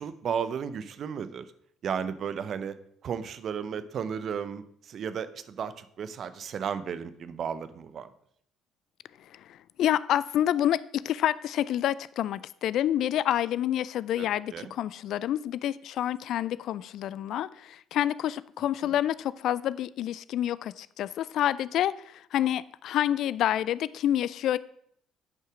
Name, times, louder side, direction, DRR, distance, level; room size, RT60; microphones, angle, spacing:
voice 1, 0.0-1.5 1.8-2.7 3.0-8.1 14.2-14.7 18.8-18.9, right 7 dB, 55° right, 0.6 m, -34 dB
voice 2, 9.3-24.6, left 11 dB, 60° left, 0.3 m, -28 dB
9.5 x 5.5 x 4.9 m
hypercardioid pair, 55°, 0 cm